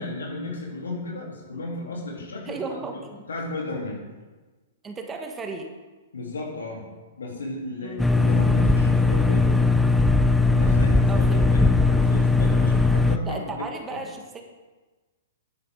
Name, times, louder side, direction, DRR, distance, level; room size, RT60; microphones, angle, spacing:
voice 1, 0.0-2.6 2.9-3.0 3.3-4.0 6.1-6.9 7.2-9.7 10.5-13.6 13.9-14.0, left 2 dB, 80° left, -2 dB, 3.2 m, -34 dB
voice 2, 2.4-3.1 4.8-5.7 7.8-8.1 11.1-11.4 11.8-12.0 13.2-14.4, right 4 dB, 20° right, 4 dB, 1.3 m, -34 dB
sound 1, 8.0-13.2, left 3 dB, 5° left, 0.5 m, -19 dB
10.5 x 9.5 x 3.8 m, 1.3 s
hypercardioid pair, 120°, 0 cm